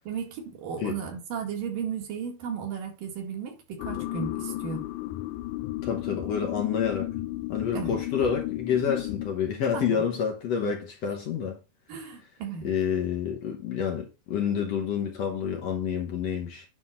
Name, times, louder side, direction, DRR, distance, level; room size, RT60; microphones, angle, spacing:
voice 1, 0.0-4.8 7.7-8.0 9.7-10.0 11.9-12.7, right 6 dB, 75° right, 3.6 m, -35 dB
sound 1, 3.8-9.3, left 16 dB, 80° left, 1.9 m, -33 dB
voice 2, 5.8-7.1 7.5-11.6 12.6-16.6, left 7 dB, 60° left, 1.9 m, -28 dB
9.7 x 3.7 x 5.7 m
omnidirectional pair, 4.0 m